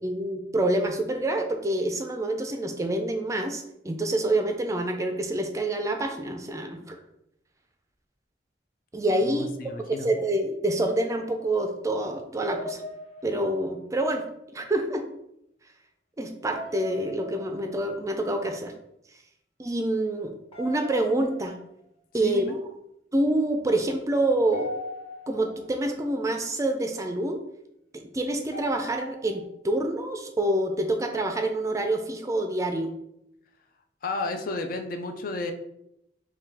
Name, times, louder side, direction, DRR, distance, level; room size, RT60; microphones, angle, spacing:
voice 1, 0.0-7.0 8.9-9.5 9.8-12.8 13.2-14.2 14.5-15.1 16.2-18.7 19.6-21.5 22.1-22.6 23.1-24.7 25.3-27.4 27.9-32.9, right 1 dB, 20° right, 5 dB, 0.4 m, -27 dB
voice 2, 9.2-10.1 22.2-22.6 34.0-35.5, left 3 dB, 50° left, 6 dB, 0.4 m, -32 dB
sound 1, 12.5-14.0 16.5-18.0 20.5-21.8 24.5-25.8 28.5-29.4, left 1 dB, 30° left, 1.0 m, -40 dB
5.5 x 2.3 x 3.4 m, 0.78 s
head